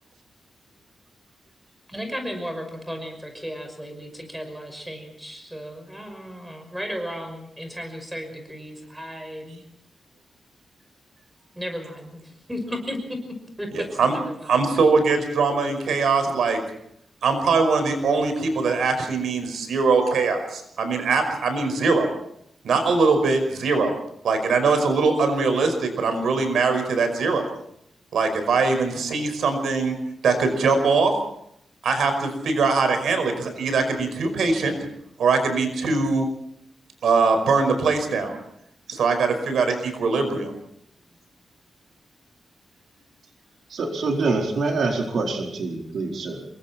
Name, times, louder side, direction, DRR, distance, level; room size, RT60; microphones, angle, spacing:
voice 1, 1.9-9.6 11.5-13.2 13.6-14.5, equal, 5° right, 5 dB, 5.8 m, -34 dB
voice 2, 14.4-16.6 17.2-22.1 22.6-23.9 24.2-27.5 28.1-29.9 30.2-31.1 31.8-34.8 35.2-36.3 37.0-38.4 38.9-40.5, right 4 dB, 90° right, 7 dB, 5.4 m, -21 dB
voice 3, 43.7-46.5, right 3 dB, 70° right, 1 dB, 4.4 m, -25 dB
27.5 x 23.0 x 4.4 m, 0.72 s
wide cardioid pair, 150°, 0 cm